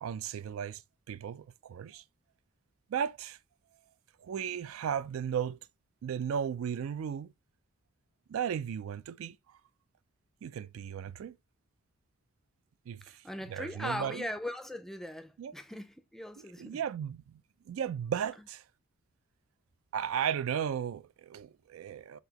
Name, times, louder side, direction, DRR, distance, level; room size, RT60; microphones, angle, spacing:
voice 1, 0.0-0.8 1.1-2.0 2.9-3.4 4.2-5.6 6.0-7.3 8.3-9.6 10.4-11.3 12.9-14.3 15.4-15.5 16.6-18.6 19.9-22.2, right 8 dB, 80° right, 0.3 m, -35 dB
voice 2, 13.0-16.8, left 1 dB, ahead, 0.3 m, -40 dB
5.8 x 2.7 x 2.8 m
head